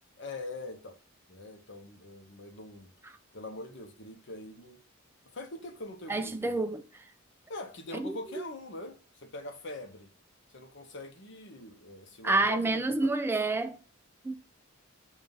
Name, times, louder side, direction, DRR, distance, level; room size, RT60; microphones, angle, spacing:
voice 1, 0.2-1.0 1.3-2.9 3.3-4.8 5.3-6.7 7.5-10.1 10.5-13.1, left 2 dB, 55° left, 0.9 m, -43 dB
voice 2, 6.1-6.8 7.9-8.4 12.2-13.8 14.2-14.4, right 2 dB, 10° right, 0.3 m, -28 dB
7.2 x 2.4 x 5.4 m
head